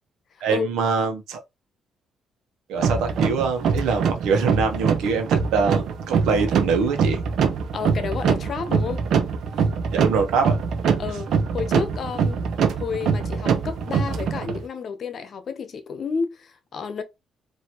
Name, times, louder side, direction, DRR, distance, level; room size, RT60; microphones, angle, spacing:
voice 1, 0.4-1.4 2.7-7.2 9.9-10.6, right 5 dB, 90° right, 1.0 m, -24 dB
sound 1, 2.8-14.6, right 6 dB, 70° right, 0.7 m, -24 dB
voice 2, 7.7-9.0 9.6-9.7 11.0-12.5 12.7-17.0, left 5 dB, 55° left, 0.9 m, -31 dB
4.4 x 2.8 x 3.0 m
cardioid pair, 90°, 0 cm